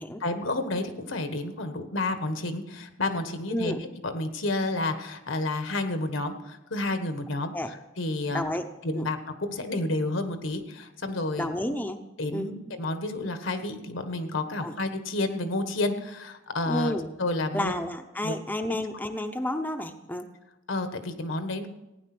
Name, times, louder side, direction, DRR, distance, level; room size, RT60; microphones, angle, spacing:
voice 1, 0.2-8.4 8.8-11.5 12.2-17.7 18.2-18.4 20.7-21.7, left 2 dB, 75° left, 8 dB, 1.4 m, -30 dB
voice 2, 3.5-3.8 7.5-7.7 8.3-8.7 9.0-9.1 11.4-12.0 12.3-12.5 14.6-14.7 16.7-17.1 17.5-20.3, left 1 dB, 10° left, 5 dB, 0.7 m, -30 dB
15.5 x 9.9 x 6.0 m, 0.95 s
head